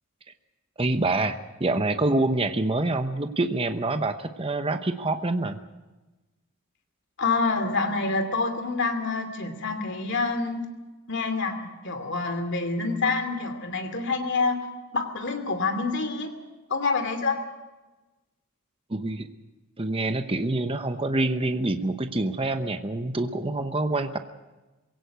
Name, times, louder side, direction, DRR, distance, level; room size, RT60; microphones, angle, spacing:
voice 1, 0.8-5.6 18.9-19.3 19.8-24.2, right 2 dB, 25° right, 8 dB, 0.9 m, -26 dB
voice 2, 7.2-10.7 11.1-14.6 14.9-16.3 16.7-17.4, left 3 dB, 55° left, 7 dB, 2.7 m, -27 dB
22.0 x 17.0 x 8.2 m, 1.1 s
head